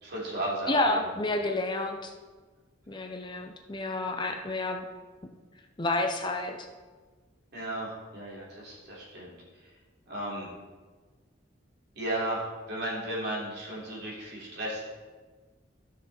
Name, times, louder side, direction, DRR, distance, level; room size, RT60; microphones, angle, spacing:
voice 1, 0.0-1.0 7.5-9.3 10.1-10.5 11.9-14.8, right 1 dB, 60° right, -5 dB, 3.4 m, -34 dB
voice 2, 0.7-2.1 2.9-4.9 5.8-6.6, left 2 dB, 25° left, 4 dB, 0.7 m, -29 dB
13.5 x 6.1 x 4.3 m, 1.4 s
head